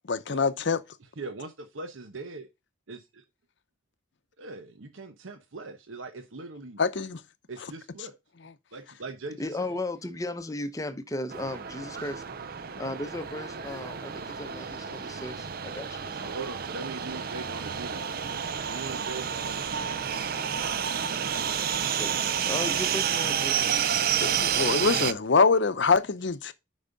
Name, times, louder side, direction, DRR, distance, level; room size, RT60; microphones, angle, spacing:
voice 1, 0.1-0.8 6.8-7.2 24.2-26.5, left 4 dB, 60° left, 0.7 m, -24 dB
voice 2, 1.2-2.5 2.9-3.2 4.4-6.8 7.5-8.1 8.7-9.7 16.3-18.1 18.7-19.7, right 3 dB, 80° right, 0.9 m, -41 dB
voice 3, 9.4-12.2 12.8-16.4 21.1-23.8, left 2 dB, 15° left, 0.7 m, -36 dB
sound 1, 11.3-25.1, right 8 dB, 50° right, 0.5 m, -30 dB
9.0 x 5.4 x 3.9 m
head